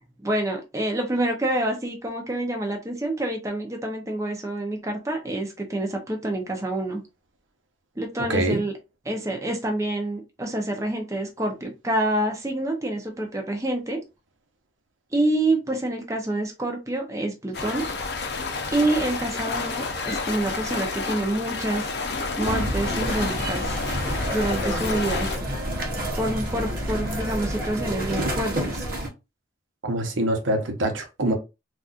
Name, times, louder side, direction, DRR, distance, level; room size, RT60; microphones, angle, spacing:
voice 1, 0.2-7.0 8.0-8.7 9.1-14.0 15.1-17.9 18.7-21.9 22.4-23.8 24.3-25.3 26.2-28.9, right 1 dB, 15° right, 0.6 m, -27 dB
voice 2, 8.3-8.6 29.8-31.3, right 1 dB, 85° right, 0.8 m, -24 dB
Water Gushing out of Freighter, 17.5-25.4, left 4 dB, 55° left, 0.6 m, -30 dB
sound 1, 22.4-29.1, equal, 50° right, 0.9 m, -28 dB
4.0 x 2.4 x 2.4 m
head